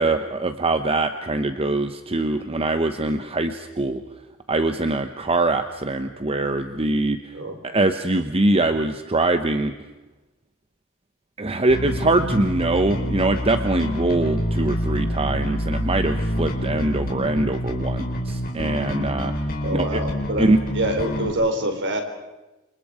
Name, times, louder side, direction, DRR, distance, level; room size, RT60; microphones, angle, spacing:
voice 1, 0.0-4.0 4.5-7.2 7.6-9.7 11.4-19.3 19.7-20.0 20.4-20.6, right 2 dB, 25° right, 9 dB, 1.0 m, -23 dB
Bass guitar, 11.7-21.3, equal, 45° left, 4.7 m, -27 dB
voice 2, 19.6-20.4 20.7-22.0, right 1 dB, 55° right, 5 dB, 4.2 m, -25 dB
29.5 x 27.0 x 5.0 m, 1.1 s
head